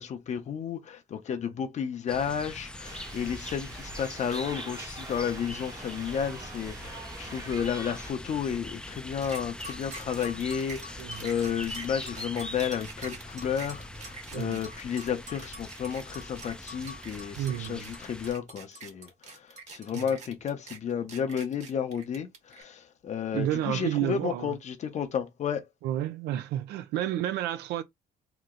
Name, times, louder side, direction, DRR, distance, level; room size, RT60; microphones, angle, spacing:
voice 1, 0.0-25.7, left 7 dB, 45° left, 0.7 m, -32 dB
sound 1, 2.1-18.3, left 1 dB, 5° left, 0.4 m, -43 dB
sound 2, 2.8-8.1, right 3 dB, 20° right, 0.8 m, -43 dB
sound 3, 9.2-22.6, right 2 dB, 45° right, 1.1 m, -44 dB
voice 2, 14.3-14.6 17.4-17.9 19.9-20.0 23.3-24.6 25.8-27.8, right 12 dB, 80° right, 0.5 m, -31 dB
2.9 x 2.0 x 3.7 m
cardioid pair, 110°, 17 cm